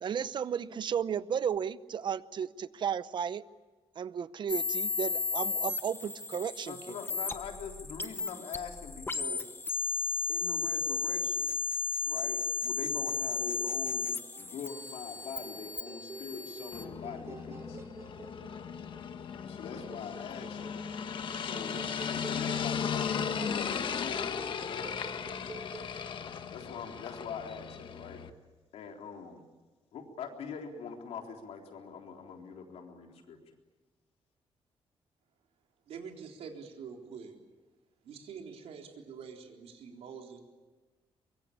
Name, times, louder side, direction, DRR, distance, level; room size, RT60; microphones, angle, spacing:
voice 1, 0.0-3.4 4.0-7.0, right 8 dB, 50° right, 16 dB, 0.7 m, -34 dB
sound 1, 4.5-16.9, left 6 dB, 20° left, 1.1 m, -34 dB
voice 2, 6.7-9.4 10.3-11.6 12.0-17.8 19.4-20.8 21.4-24.9 26.5-28.2 28.7-29.5 29.9-33.6, left 6 dB, 90° left, 2 dB, 3.7 m, -43 dB
sound 2, 13.4-25.9, right 3 dB, 25° right, 1.4 m, -49 dB
sound 3, 16.7-28.3, left 7 dB, 55° left, 1.3 m, -36 dB
voice 3, 35.9-37.4 38.0-40.4, right 6 dB, 85° right, 2 dB, 3.9 m, -46 dB
24.0 x 23.0 x 8.6 m, 1.3 s
cardioid pair, 145°, 10 cm